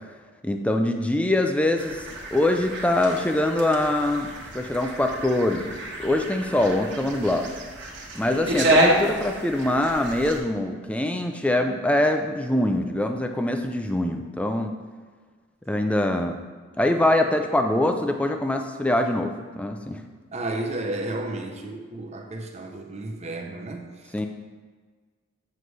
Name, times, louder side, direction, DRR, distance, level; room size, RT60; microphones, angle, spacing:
voice 1, 0.4-2.1 2.3-7.5 8.1-14.8 15.7-16.4 16.8-20.0 24.1-24.3, left 1 dB, 5° left, 5 dB, 0.4 m, -24 dB
sound 1, 1.8-10.4, right 1 dB, 55° right, 1.4 m, -28 dB
voice 2, 20.3-23.9, right 2 dB, 30° right, 4 dB, 0.6 m, -32 dB
7.7 x 6.7 x 3.2 m, 1.5 s
head